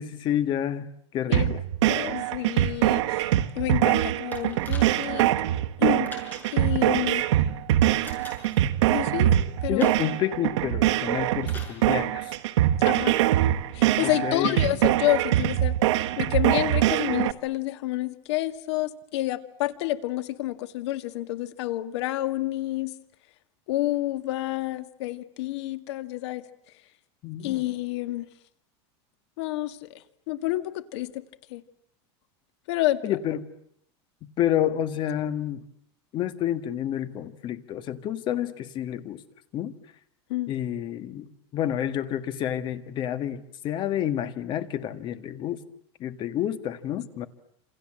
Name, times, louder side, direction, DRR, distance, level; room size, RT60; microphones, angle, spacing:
voice 1, 0.0-1.6 9.7-12.4 14.0-14.6 27.2-27.6 33.0-33.4 34.2-35.6 36.1-39.2 39.5-39.7 40.5-45.6 46.0-47.3, left 11 dB, 30° left, 11 dB, 1.7 m, -29 dB
sound 1, 1.3-17.3, right 13 dB, 85° right, 1.4 m, -23 dB
voice 2, 1.9-5.3 5.8-6.1 6.5-7.2 8.9-9.4 9.6-9.9 12.8-13.2 13.7-15.8 16.2-22.9 23.7-26.4 27.4-28.3 29.4-31.2 31.5-31.6 32.7-33.2 40.3-40.5, left 16 dB, 70° left, 10 dB, 2.1 m, -29 dB
sound 2, 4.3-5.3 6.1-6.7 8.0-8.6 9.8-10.2 11.4-11.8 12.8-12.9, left 2 dB, 10° left, 6.8 m, -43 dB
28.0 x 27.5 x 7.7 m, 0.69 s
supercardioid pair, 160°, 15 cm